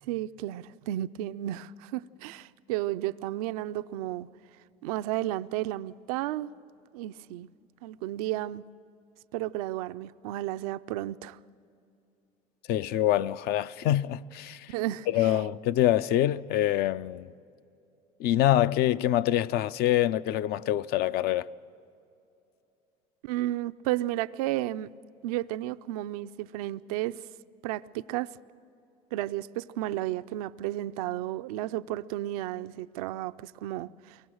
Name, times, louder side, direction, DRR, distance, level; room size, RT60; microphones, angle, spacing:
voice 1, 0.1-4.3 4.8-6.5 6.9-7.5 7.8-8.6 9.3-11.4 14.7-15.3 23.2-24.9 25.2-27.2 27.6-28.3 29.1-34.2, right 15 dB, 85° right, 0.4 m, -33 dB
voice 2, 12.7-14.7 15.1-17.3 18.2-21.5, left 13 dB, 60° left, 0.5 m, -25 dB
23.5 x 18.5 x 6.3 m
supercardioid pair, 80°, 18 cm